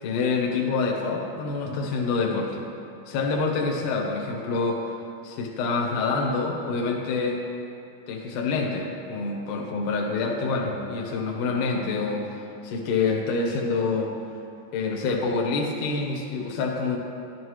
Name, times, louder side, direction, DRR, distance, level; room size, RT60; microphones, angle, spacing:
voice 1, 0.0-2.7 3.1-4.9 5.2-7.4 8.1-12.3 12.6-14.1 14.7-17.0, left 4 dB, 65° left, 0 dB, 2.2 m, -26 dB
13.5 x 12.0 x 3.1 m, 2.6 s
omnidirectional pair, 4.9 m